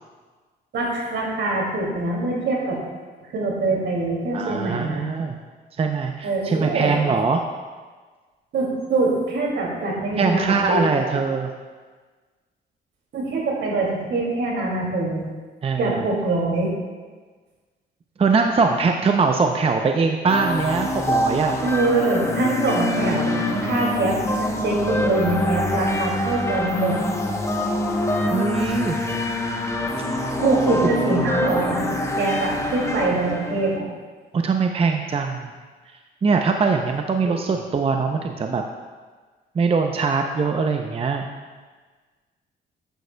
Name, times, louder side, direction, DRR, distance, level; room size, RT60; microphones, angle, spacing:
voice 1, 0.7-2.8 3.2-5.0 6.2-7.0 8.5-11.2 13.1-15.2 15.8-16.7 21.6-27.0 30.4-31.8 32.2-33.8 37.2-37.3, right 2 dB, 70° right, -2 dB, 2.3 m, -24 dB
voice 2, 4.3-5.4 5.8-7.4 10.2-11.5 15.6-16.0 18.2-21.6 28.3-29.0 34.3-35.5 36.2-38.6 39.6-41.3, right 4 dB, 30° right, 4 dB, 0.5 m, -22 dB
sound 1, 20.3-33.8, left 1 dB, 15° left, 0.8 m, -25 dB
9.4 x 9.1 x 2.2 m, 1.4 s
cardioid pair, 90°, 20 cm